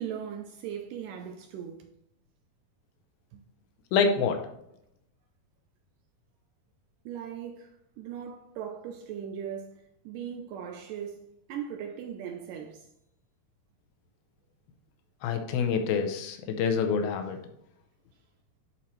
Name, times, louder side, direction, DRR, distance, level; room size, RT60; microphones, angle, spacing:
voice 1, 0.0-1.9 3.3-3.4 7.1-7.7 8.0-12.9, right 8 dB, 80° right, 1.9 m, -39 dB
voice 2, 3.9-4.5 15.2-17.4, left 5 dB, 85° left, 2.6 m, -26 dB
11.0 x 4.3 x 3.1 m
omnidirectional pair, 4.3 m